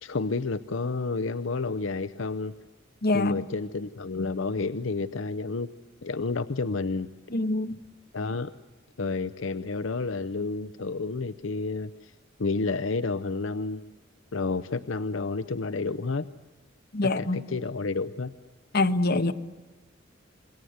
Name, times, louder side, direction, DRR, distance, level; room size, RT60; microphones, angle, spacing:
voice 1, 0.0-2.5 3.1-5.7 6.0-7.1 8.1-8.5 9.0-12.1 12.4-13.9 14.3-16.3 17.0-18.3, left 3 dB, 75° left, 11 dB, 0.7 m, -30 dB
voice 2, 3.0-3.4 7.3-7.8 16.9-17.4 18.7-19.3, left 2 dB, 55° left, 8 dB, 1.3 m, -24 dB
28.0 x 21.5 x 8.0 m, 1.2 s
head